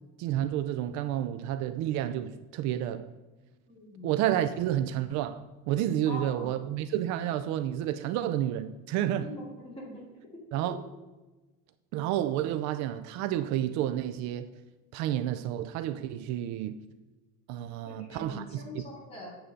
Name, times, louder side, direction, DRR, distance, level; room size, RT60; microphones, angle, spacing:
voice 1, 0.2-3.1 4.0-9.3 10.5-10.8 11.9-14.5 14.9-16.8 17.5-18.8, right 11 dB, 60° right, 0.5 m, -30 dB
voice 2, 3.7-4.1 6.1-6.5 9.1-10.0 10.6-10.8 17.9-19.4, left 1 dB, 20° left, 2.8 m, -43 dB
8.8 x 3.8 x 6.8 m
cardioid pair, 165°, 32 cm